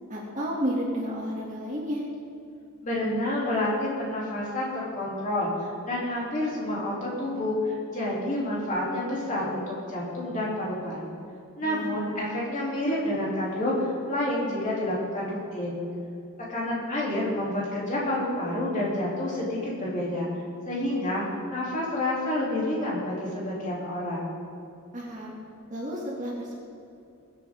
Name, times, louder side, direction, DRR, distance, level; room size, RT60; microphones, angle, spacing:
voice 1, 0.1-2.0 11.6-11.9 24.9-25.3 25.7-26.6, equal, 35° right, -4 dB, 2.5 m, -31 dB
voice 2, 2.8-11.1 11.6-15.8 16.5-20.3 20.6-21.2 21.5-24.3, left 1 dB, 35° left, -6 dB, 3.2 m, -29 dB
21.5 x 8.5 x 3.8 m, 2.6 s
head